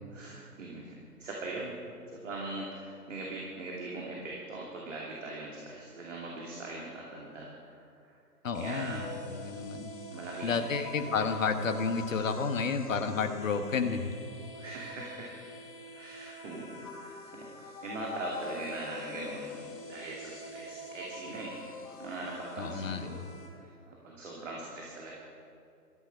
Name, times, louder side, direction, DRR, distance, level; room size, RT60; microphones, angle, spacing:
voice 1, 0.1-8.2 8.5-9.0 10.1-10.7 11.0-11.2 14.5-15.3 15.9-23.3 23.5-25.1, right 2 dB, 50° right, -3 dB, 2.8 m, -41 dB
voice 2, 8.4-9.0 9.3-9.9 10.4-14.1 22.6-23.3, left 5 dB, 55° left, 7 dB, 1.3 m, -31 dB
sound 1, 8.5-23.5, left 2 dB, 20° left, 2.0 m, -45 dB
17.5 x 13.5 x 5.5 m, 2.5 s
figure-of-eight pair, 140°, 48 cm